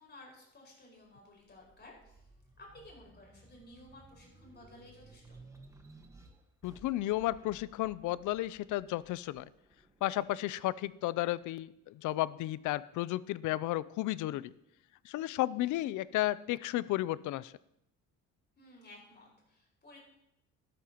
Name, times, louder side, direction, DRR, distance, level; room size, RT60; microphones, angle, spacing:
voice 1, 0.0-2.2 2.6-5.4 18.6-20.0, left 1 dB, 30° left, -1 dB, 5.3 m, -55 dB
sound 1, 1.0-11.8 12.3-13.5, right 2 dB, 10° right, 1.4 m, -59 dB
voice 2, 6.6-9.5 10.0-14.5 15.0-17.5, left 16 dB, 70° left, 19 dB, 0.5 m, -33 dB
13.0 x 12.5 x 2.9 m, 0.81 s
cardioid pair, 95°, 32 cm